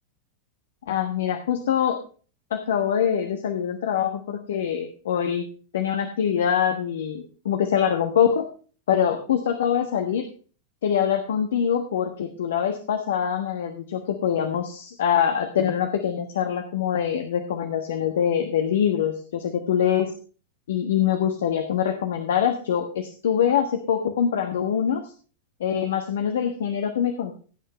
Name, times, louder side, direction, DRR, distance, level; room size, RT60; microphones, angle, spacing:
voice 1, 0.9-2.0 2.5-5.5 5.7-8.5 8.9-10.3 10.8-20.1 20.7-25.1 25.6-27.4, left 8 dB, 60° left, 7 dB, 1.3 m, -24 dB
16.0 x 8.9 x 3.1 m, 0.39 s
figure-of-eight pair, 90°, 0 cm